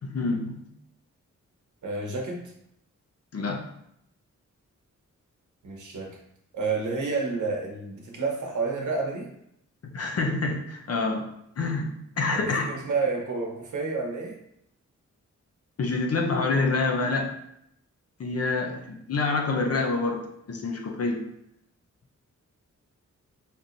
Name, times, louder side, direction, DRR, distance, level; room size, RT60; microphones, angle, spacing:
voice 1, 0.0-0.6 3.3-3.6 9.8-12.7 15.8-17.3 18.2-21.3, left 3 dB, 55° left, 2 dB, 0.7 m, -27 dB
voice 2, 1.8-2.5 5.6-6.2 6.5-9.3 12.3-14.4, right 4 dB, 75° right, 0 dB, 1.0 m, -30 dB
5.2 x 2.9 x 2.6 m, 0.76 s
wide cardioid pair, 130°, 30 cm